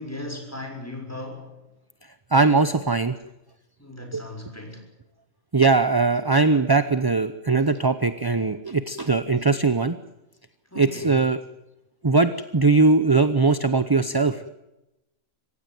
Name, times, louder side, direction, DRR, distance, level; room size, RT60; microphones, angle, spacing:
voice 1, 0.0-1.5 3.8-4.9 10.7-11.2, left 1 dB, 10° left, 3 dB, 6.3 m, -37 dB
voice 2, 2.3-3.1 4.1-4.2 5.5-10.0 10.8-11.4 12.0-14.4, right 3 dB, 20° right, 12 dB, 0.6 m, -20 dB
26.0 x 16.0 x 9.2 m, 0.94 s
omnidirectional pair, 1.4 m